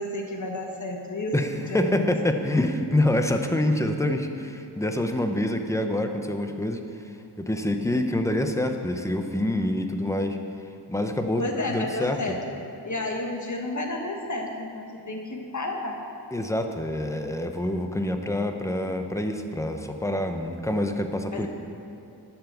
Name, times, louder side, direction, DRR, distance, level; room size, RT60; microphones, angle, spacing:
voice 1, 0.0-2.1 11.4-12.4 12.8-16.0 21.3-21.5, left 1 dB, 45° left, 2 dB, 1.5 m, -31 dB
voice 2, 1.3-6.8 7.4-10.4 10.9-12.2 16.3-21.5, left 1 dB, 5° left, 5 dB, 0.8 m, -26 dB
11.5 x 7.1 x 6.9 m, 2.7 s
wide cardioid pair, 85°, 42 cm